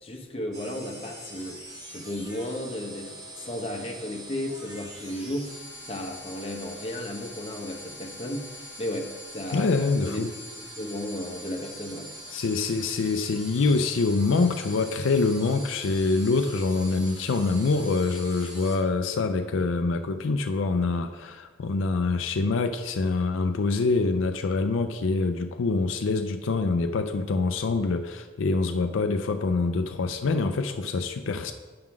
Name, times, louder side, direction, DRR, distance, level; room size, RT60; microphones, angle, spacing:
voice 1, 0.0-1.6 1.9-9.7 10.0-10.2 10.6-12.1, left 1 dB, 30° left, 2 dB, 0.9 m, -34 dB
sound 1, 0.5-18.8, equal, 20° right, 1.2 m, -43 dB
voice 2, 9.5-10.3 12.3-31.5, left 3 dB, 80° left, 7 dB, 0.4 m, -25 dB
8.6 x 3.7 x 5.9 m, 1.3 s
head